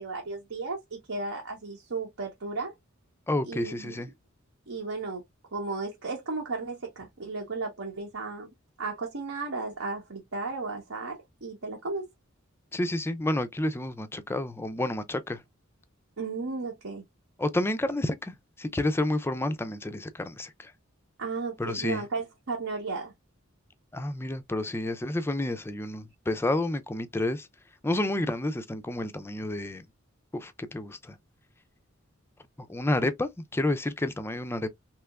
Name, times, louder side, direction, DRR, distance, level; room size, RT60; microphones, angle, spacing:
voice 1, 0.0-2.7 3.4-4.0 4.7-5.2 5.5-12.1 16.2-17.0 21.2-23.1, right 3 dB, 70° right, 0.9 m, -34 dB
voice 2, 3.3-4.1 12.7-15.4 17.4-20.7 21.6-22.0 23.9-27.5 27.8-29.8 30.3-31.1 32.6-34.7, left 1 dB, 10° left, 0.4 m, -30 dB
3.3 x 2.9 x 2.3 m
head